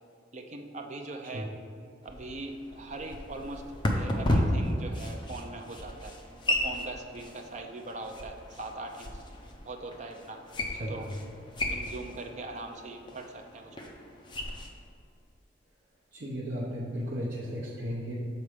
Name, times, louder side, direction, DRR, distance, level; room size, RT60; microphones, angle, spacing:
voice 1, 0.3-1.5 2.0-6.2 6.5-9.2 9.6-10.4 10.9-11.1 11.7-13.9, right 2 dB, 40° right, 3 dB, 0.6 m, -41 dB
sound 1, 2.0-14.7, left 1 dB, 25° left, 0.6 m, -34 dB
voice 2, 10.7-11.0 16.1-18.1, equal, 55° right, -7 dB, 0.9 m, -35 dB
6.8 x 4.2 x 5.0 m, 2.4 s
head